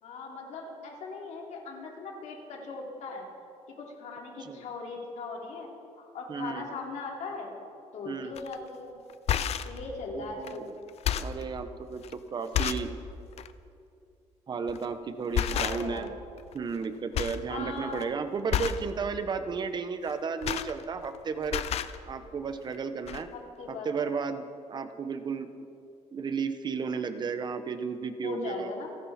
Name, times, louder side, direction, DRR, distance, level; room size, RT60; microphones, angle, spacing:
voice 1, 0.0-3.3 3.8-5.7 6.0-7.5 7.9-9.0 9.6-10.7 15.5-16.1 17.5-18.1 23.3-23.9 28.2-28.9, left 3 dB, 75° left, -1 dB, 3.2 m, -39 dB
voice 2, 6.3-6.7 8.0-8.3 10.1-10.7 11.2-12.9 14.5-16.1 16.5-21.6 22.1-23.3 23.7-25.5 26.1-28.7, right 5 dB, 35° right, 9 dB, 1.0 m, -33 dB
sound 1, 8.4-8.5 9.1-9.8 10.4-10.6 10.9-11.4 12.0-12.1 12.5-12.9 13.3-13.5 14.7-14.9 15.3-16.1 16.4-16.9 17.1-17.5 17.8-18.0 18.5-18.9 20.1-21.2 21.4-22.0 22.7-22.8 23.1-23.2, left 10 dB, 60° left, 0.6 m, -30 dB
29.0 x 11.5 x 4.3 m, 2.5 s
cardioid pair, 160°, 12 cm